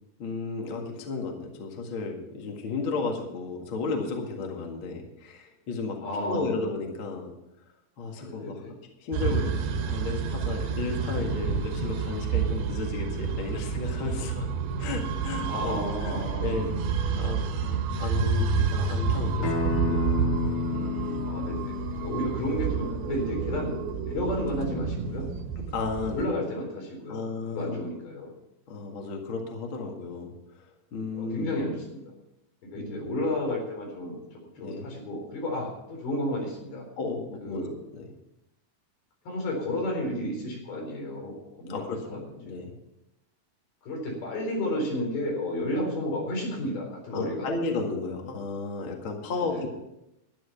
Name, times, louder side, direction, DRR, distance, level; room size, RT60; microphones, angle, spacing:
voice 1, 0.2-6.0 6.2-7.3 8.0-8.6 9.0-14.5 14.8-16.1 16.4-16.8 17.2-20.3 20.7-21.3 22.1-22.3 25.6-26.4 27.1-27.8 28.7-30.3 30.9-31.6 32.7-33.0 34.6-34.9 37.0-37.6 37.9-38.1 41.7-42.7 47.1-49.7, left 4 dB, 40° left, 2 dB, 2.2 m, -34 dB
voice 2, 6.0-6.5 8.2-8.7 15.5-16.7 21.2-23.7 24.0-25.3 26.1-28.3 31.2-32.1 32.7-34.2 34.6-36.9 37.4-37.7 39.3-42.2 42.5-42.7 43.8-47.5 49.5-49.7, left 1 dB, 90° left, -1 dB, 6.0 m, -32 dB
sound 1, 9.1-26.3, right 5 dB, 85° right, 3.1 m, -29 dB
Acoustic guitar, 19.4-24.6, left 4 dB, 70° left, 3.2 m, -33 dB
12.0 x 11.0 x 5.8 m, 0.88 s
omnidirectional pair, 4.2 m